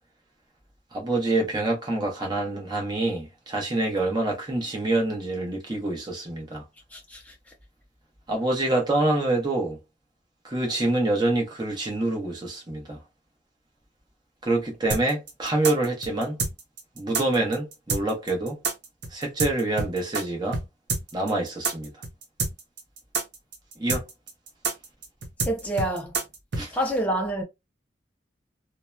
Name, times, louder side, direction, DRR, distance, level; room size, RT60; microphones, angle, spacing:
voice 1, 0.9-6.6 8.3-9.8 10.4-13.0 14.4-16.4 17.0-18.6 19.1-20.6 21.1-21.9 23.8-24.1 26.6-26.7, right 2 dB, 25° right, 0.8 m, -26 dB
sound 1, 14.9-20.2 20.5-20.6 20.9-26.6, right 4 dB, 75° right, 0.7 m, -28 dB
voice 2, 25.5-26.1 26.7-27.4, right 1 dB, 10° left, 0.5 m, -27 dB
2.7 x 2.0 x 2.2 m
head